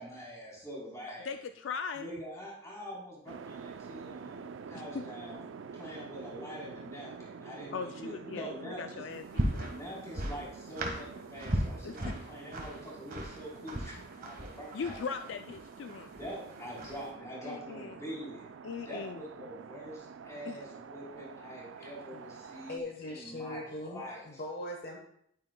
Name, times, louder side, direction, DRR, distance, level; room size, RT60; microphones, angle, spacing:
voice 1, 0.0-1.4 1.9-9.0 9.7-15.2 16.1-18.5 18.9-24.4, equal, 15° left, -5 dB, 3.5 m, -45 dB
voice 2, 1.2-2.1 4.9-5.0 7.7-9.8 11.8-12.2 14.7-16.1 17.4-17.9 18.6-19.2 20.5-20.6, left 5 dB, 70° left, 8 dB, 0.4 m, -39 dB
sound 1, 3.3-22.8, right 5 dB, 80° right, 0.4 m, -48 dB
sound 2, 9.1-17.1, right 1 dB, 50° right, 1.5 m, -38 dB
voice 3, 22.7-25.0, left 1 dB, 55° left, 1 dB, 1.1 m, -40 dB
10.5 x 9.2 x 2.2 m, 0.70 s
head